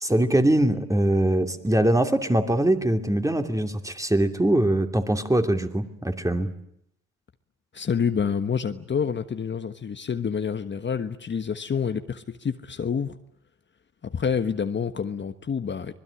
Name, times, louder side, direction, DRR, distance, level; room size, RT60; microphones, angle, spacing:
voice 1, 0.0-6.5, right 1 dB, 10° right, 6 dB, 2.8 m, -22 dB
voice 2, 7.7-13.1 14.0-15.9, left 6 dB, 40° left, 9 dB, 1.4 m, -28 dB
25.5 x 20.5 x 10.0 m, 0.74 s
cardioid pair, 90°, 30 cm